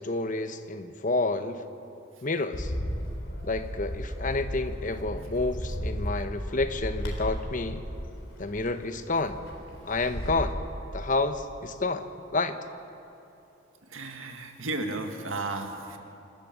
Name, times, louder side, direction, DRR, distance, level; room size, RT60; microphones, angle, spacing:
voice 1, 0.0-1.7 2.2-2.7 3.4-7.9 8.4-9.4 9.9-10.5 10.9-12.6, left 3 dB, 40° left, 10 dB, 0.9 m, -29 dB
Bird, 2.5-10.5, equal, 85° left, 3.7 m, -35 dB
voice 2, 13.9-16.0, right 2 dB, 90° right, 5 dB, 1.9 m, -34 dB
27.5 x 13.0 x 7.4 m, 2.8 s
head